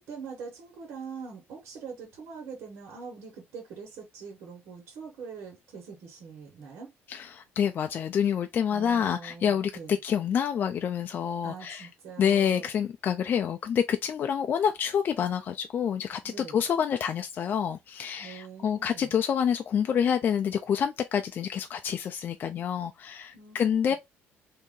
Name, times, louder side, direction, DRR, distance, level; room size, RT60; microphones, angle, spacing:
voice 1, 0.0-6.9 8.7-10.0 11.4-12.7 16.2-16.6 18.2-19.2 23.3-23.6 23.8-24.0, right 5 dB, 75° right, 1.4 m, -43 dB
voice 2, 7.1-11.9 12.2-24.0, left 8 dB, 45° left, 0.4 m, -27 dB
2.8 x 2.6 x 3.6 m
cardioid pair, 125°, 5 cm